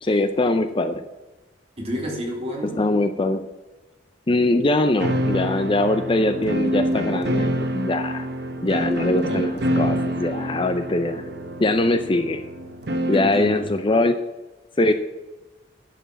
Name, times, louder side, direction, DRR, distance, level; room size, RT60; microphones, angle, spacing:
voice 1, 0.0-1.0 2.8-3.4 4.3-8.3 8.6-11.2 11.6-12.4 13.1-14.2 14.8-14.9, left 2 dB, 25° left, 9 dB, 0.5 m, -22 dB
voice 2, 1.8-2.9 9.3-9.5 13.1-13.7, equal, 35° right, -2 dB, 3.3 m, -30 dB
sound 1, 5.0-13.4, equal, 60° right, 1.1 m, -26 dB
11.0 x 5.8 x 7.4 m, 1.1 s
head